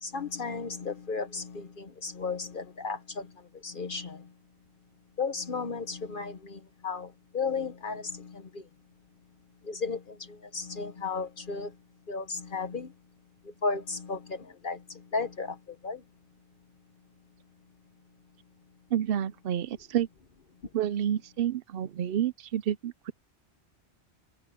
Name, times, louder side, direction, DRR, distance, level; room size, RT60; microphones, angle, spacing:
voice 1, 0.0-4.3 5.2-8.7 9.6-11.8 12.1-12.9 13.4-16.0, left 4 dB, 50° left, 1.1 m, -35 dB
voice 2, 18.9-20.1 20.7-23.1, right 10 dB, 60° right, 0.7 m, -29 dB
omnidirectional pair, 1.1 m